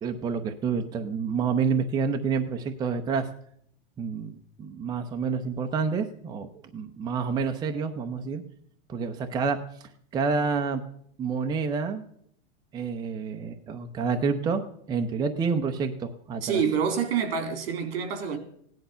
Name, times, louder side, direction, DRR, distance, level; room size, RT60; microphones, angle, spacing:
voice 1, 0.0-3.3 4.0-8.4 8.9-10.8 11.2-12.0 12.7-14.6 14.9-16.6, right 5 dB, 15° right, 0.7 m, -28 dB
voice 2, 16.4-18.4, right 6 dB, 70° right, 3.3 m, -27 dB
17.0 x 10.5 x 5.6 m
supercardioid pair, 165°, 31 cm